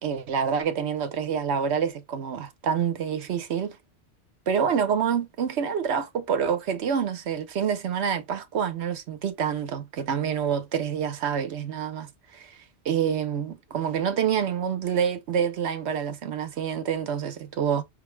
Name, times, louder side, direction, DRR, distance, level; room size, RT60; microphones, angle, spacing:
voice 1, 0.0-3.8 4.5-12.6 12.8-17.8, right 7 dB, 75° right, 1.0 m, -27 dB
5.5 x 2.3 x 3.1 m
omnidirectional pair, 1.1 m